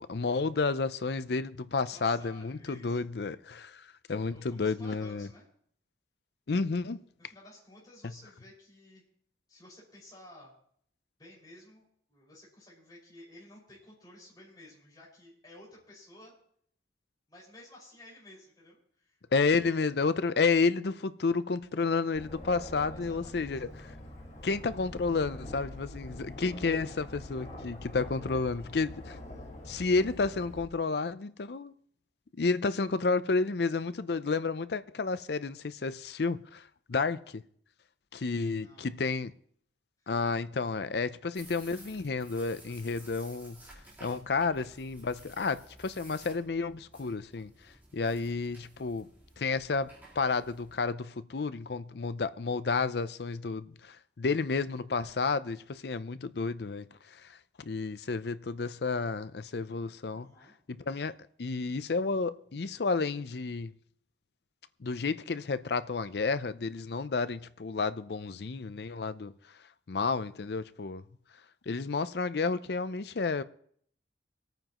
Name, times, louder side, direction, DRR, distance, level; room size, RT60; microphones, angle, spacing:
voice 1, 0.0-5.3 6.5-7.0 19.3-23.9 24.4-29.2 29.7-31.7 32.4-37.4 38.1-39.3 40.1-43.6 44.0-47.5 47.9-49.1 49.4-49.9 50.2-60.3 60.9-61.1 61.4-63.7 64.8-69.3 69.9-71.0 71.7-73.4, left 4 dB, 65° left, 0.5 m, -31 dB
voice 2, 1.9-3.0 4.3-5.4 7.2-9.0 9.5-10.5 11.2-16.3 17.3-19.2 19.5-19.9 22.9-23.5 38.3-38.9 60.2-60.5, left 1 dB, 20° left, 5.6 m, -54 dB
Aircraft, 22.1-30.6, left 1 dB, 40° left, 1.9 m, -45 dB
sound 1, 41.3-50.9, right 1 dB, 10° right, 3.6 m, -54 dB
26.0 x 9.1 x 3.0 m
head